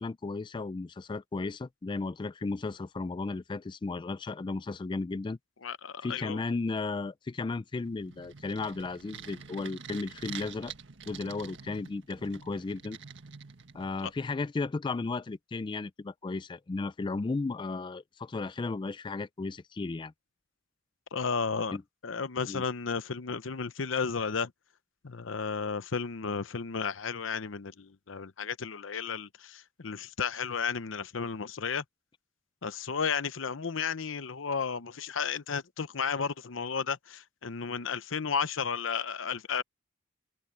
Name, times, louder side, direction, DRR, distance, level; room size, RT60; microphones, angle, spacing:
voice 1, 0.0-5.4 6.0-10.7 11.1-13.0 13.7-20.1 21.7-21.8 22.5-22.6, left 3 dB, 25° left, 0.3 m, -34 dB
voice 2, 5.6-6.4 21.1-21.8 22.0-24.5 25.0-31.8 32.6-39.6, left 5 dB, 90° left, 0.8 m, -33 dB
sound 1, 7.8-14.2, right 6 dB, 70° right, 1.8 m, -47 dB
head